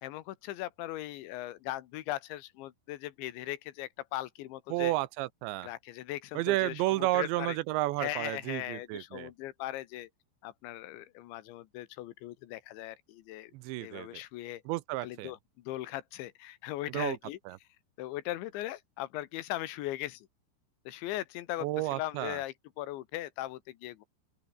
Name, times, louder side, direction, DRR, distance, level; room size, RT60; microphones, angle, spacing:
voice 1, 0.0-4.9 5.6-7.6 8.0-10.1 10.4-13.5 13.8-14.6 15.0-17.4 18.0-20.3 20.9-24.1, left 15 dB, 80° left, 3.5 m, -39 dB
voice 2, 4.7-5.7 6.4-9.3 13.5-14.1 14.7-15.3 16.9-17.2 17.5-17.6 21.6-22.4, right 18 dB, 80° right, 2.9 m, -31 dB
open air
omnidirectional pair, 5.4 m